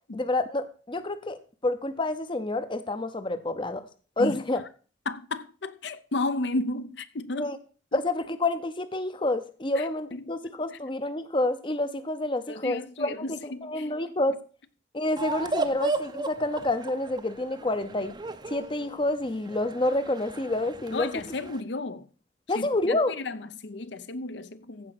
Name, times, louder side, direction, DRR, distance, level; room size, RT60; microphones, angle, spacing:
voice 1, 0.1-3.8 4.2-4.6 7.4-7.6 7.9-13.1 13.7-14.4 14.9-18.1 18.5-21.1 22.5-23.1, left 2 dB, 25° left, 0.7 m, -28 dB
voice 2, 4.2-4.7 5.1-7.5 7.9-8.0 9.8-10.4 10.7-10.8 12.5-13.9 20.9-22.1 22.5-24.9, left 2 dB, 60° left, 0.7 m, -33 dB
sound 1, 15.2-21.6, right 2 dB, 20° right, 0.6 m, -35 dB
15.0 x 5.1 x 5.9 m
head